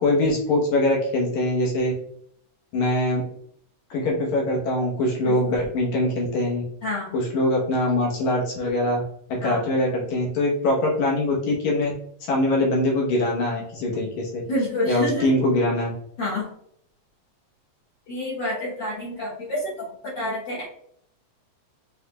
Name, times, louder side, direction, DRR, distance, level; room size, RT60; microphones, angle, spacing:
voice 1, 0.0-1.9 2.7-3.2 3.9-6.6 7.1-9.0 9.3-11.9 12.3-14.4 14.9-15.9, left 1 dB, 75° left, -2 dB, 2.5 m, -23 dB
voice 2, 5.2-5.6 6.8-7.1 9.4-9.7 14.5-15.3 16.2-16.5 18.1-20.6, left 1 dB, 55° left, -5 dB, 1.4 m, -28 dB
6.1 x 3.3 x 2.4 m, 0.66 s
omnidirectional pair, 3.4 m